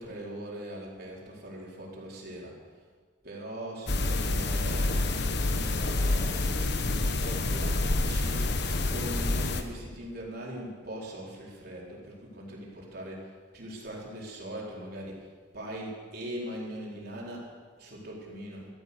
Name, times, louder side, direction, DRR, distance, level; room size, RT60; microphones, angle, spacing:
voice 1, 0.0-2.6 3.2-15.2 15.5-17.5 17.8-18.7, equal, 55° right, -3 dB, 4.3 m, -41 dB
sound 1, 3.9-9.6, left 2 dB, 60° left, 1.2 m, -28 dB
15.0 x 13.0 x 6.8 m, 1.5 s
head